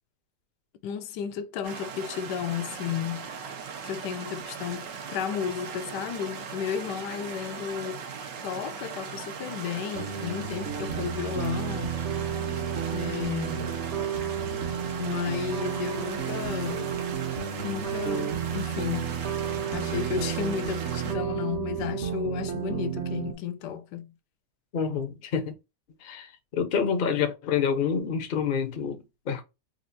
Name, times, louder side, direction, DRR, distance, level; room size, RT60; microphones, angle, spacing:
voice 1, 0.8-3.3 3.8-8.0 8.4-12.4 12.9-13.7 14.9-16.9 17.6-19.2 19.7-24.1, left 8 dB, 80° left, 1.2 m, -33 dB
sound 1, 1.6-21.2, right 6 dB, 90° right, 1.6 m, -39 dB
sound 2, 9.9-23.3, right 8 dB, 50° right, 0.9 m, -32 dB
voice 2, 24.7-25.5 26.0-29.4, left 6 dB, 50° left, 0.6 m, -28 dB
4.3 x 2.4 x 2.6 m
omnidirectional pair, 1.8 m